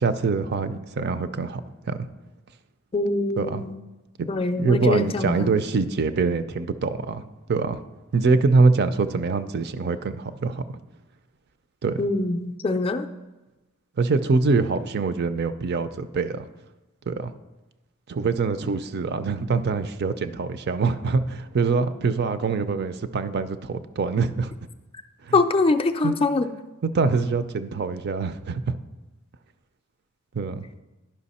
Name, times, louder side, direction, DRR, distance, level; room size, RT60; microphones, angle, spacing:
voice 1, 0.0-2.1 3.4-3.6 4.2-4.3 4.5-7.2 7.5-7.8 8.1-10.8 11.8-12.0 14.0-16.5 17.1-17.3 18.1-24.5 25.2-25.4 26.0-26.2 26.8-28.8 30.3-30.6, right 4 dB, 50° right, 12 dB, 0.4 m, -24 dB
voice 2, 2.9-3.7 4.3-5.5 12.0-13.1 25.3-26.5, left 3 dB, 25° left, 7 dB, 0.4 m, -23 dB
10.5 x 5.7 x 4.2 m, 1.1 s
head